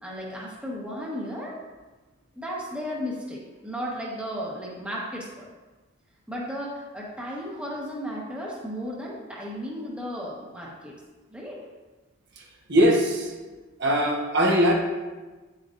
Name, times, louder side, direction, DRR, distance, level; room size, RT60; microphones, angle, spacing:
voice 1, 0.0-1.6 2.3-5.5 6.3-10.9 11.3-11.6, equal, 5° right, -4 dB, 1.2 m, -34 dB
voice 2, 12.7-13.3 13.8-14.7, equal, 55° right, -1 dB, 1.2 m, -20 dB
9.4 x 7.5 x 2.6 m, 1.2 s
head